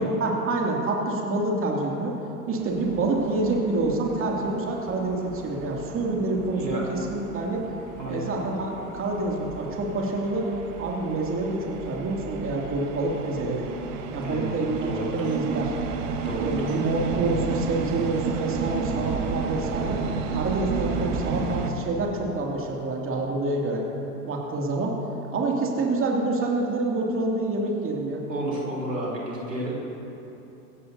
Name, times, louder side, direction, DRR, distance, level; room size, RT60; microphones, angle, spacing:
voice 1, 0.0-2.1 2.5-7.6 8.1-10.5 10.8-13.7 14.1-15.8 16.4-20.0 20.3-23.8 24.3-25.0 25.3-28.2, right 2 dB, 25° right, -1 dB, 2.5 m, -27 dB
sound 1, 2.6-21.7, right 5 dB, 50° right, 1.6 m, -33 dB
voice 2, 6.5-6.9 8.0-8.3 14.2-15.4 16.2-16.8 28.3-29.7, right 1 dB, 85° right, -4 dB, 3.7 m, -31 dB
25.0 x 16.5 x 2.8 m, 3.0 s
figure-of-eight pair, 80°, 47 cm